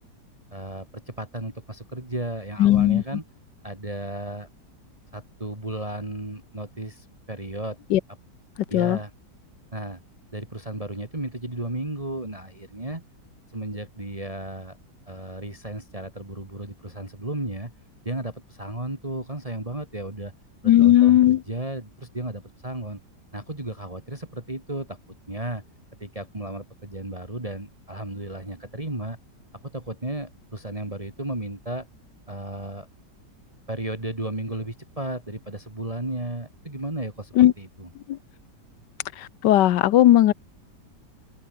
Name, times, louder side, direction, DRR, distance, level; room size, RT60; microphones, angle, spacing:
voice 1, 0.5-3.2 3.6-4.5 5.1-7.8 8.7-9.1 9.7-10.0 10.3-13.0 13.5-14.8 15.1-17.7 18.0-20.3 20.8-23.0 23.3-25.0 25.3-25.6 26.0-29.2 29.7-31.9 32.3-32.9 33.7-37.9, right 1 dB, 20° right, 3.2 m, -34 dB
voice 2, 2.6-3.0 7.9-8.0 8.7-9.0 20.6-21.4 37.4-37.5 38.1-38.2 39.2-40.3, left 13 dB, 80° left, 1.4 m, -17 dB
omnidirectional pair, 1.9 m